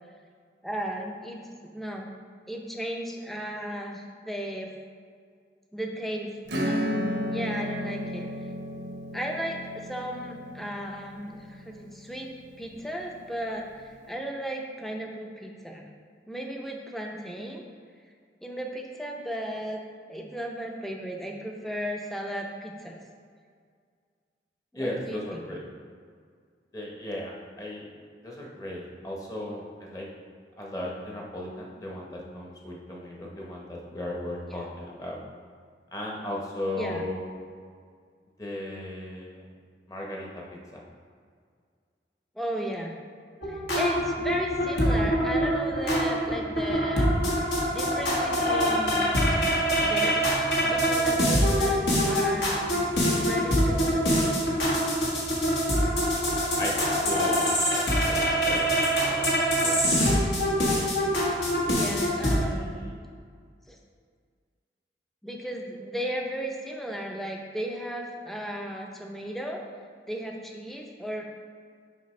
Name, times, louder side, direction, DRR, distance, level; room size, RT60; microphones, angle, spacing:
voice 1, 0.6-2.1 2.5-4.7 5.7-6.3 6.6-8.3 9.1-15.9 16.3-17.6 18.4-19.8 20.1-23.0 24.7-25.5 34.5-34.7 36.8-37.1 42.4-42.9 43.5-47.1 47.7-49.1 49.8-50.3 50.7-52.8 53.2-54.1 61.7-62.9 63.7-63.8 65.2-69.6 70.1-71.2, equal, ahead, 0 dB, 0.5 m, -35 dB
Acoustic guitar / Strum, 6.5-12.7, equal, 80° right, 0.8 m, -33 dB
voice 2, 24.7-25.6 26.7-27.9 28.2-30.1 30.6-35.2 35.9-37.2 38.4-39.5 39.9-40.4 56.6-58.7 59.0-59.2 59.6-60.1 62.3-63.0, left 1 dB, 20° left, -2 dB, 0.9 m, -36 dB
sound 1, 43.4-62.4, equal, 70° left, 1.4 m, -24 dB
6.6 x 4.9 x 3.2 m, 2.1 s
head